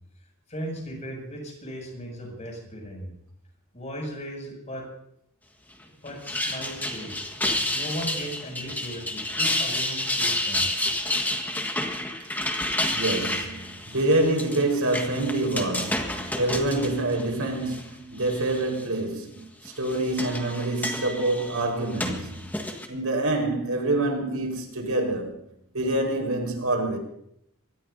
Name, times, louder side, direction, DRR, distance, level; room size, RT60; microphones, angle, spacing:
voice 1, 0.5-3.1 3.7-4.8 5.8-7.2 7.7-10.7, equal, 35° left, 7.2 m, -37 dB
sound 1, 6.1-17.8 18.2-18.8 19.7-22.9, left 1 dB, 10° left, 1.6 m, -30 dB
voice 2, 12.9-22.5 22.9-25.4 25.7-27.0, right 2 dB, 85° right, 4.8 m, -26 dB
24.0 x 18.5 x 2.8 m
head